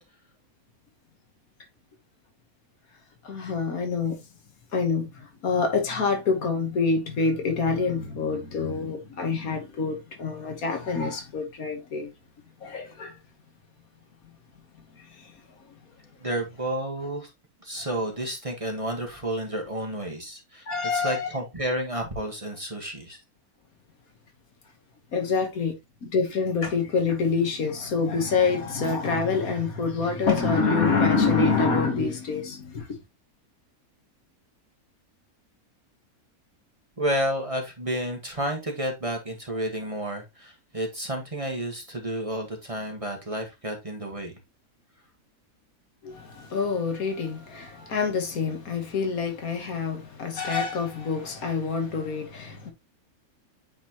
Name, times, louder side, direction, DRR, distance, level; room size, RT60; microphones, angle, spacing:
voice 1, 3.2-4.3 4.7-12.1 12.6-13.2 14.8-16.2 20.7-21.3 25.1-25.7 26.0-33.0 46.0-52.7, left 4 dB, 70° left, 1.7 m, -26 dB
voice 2, 16.2-17.3 17.6-20.7 20.9-23.2 37.0-44.3, right 1 dB, 25° right, 1.4 m, -31 dB
8.6 x 4.1 x 2.9 m
omnidirectional pair, 1.6 m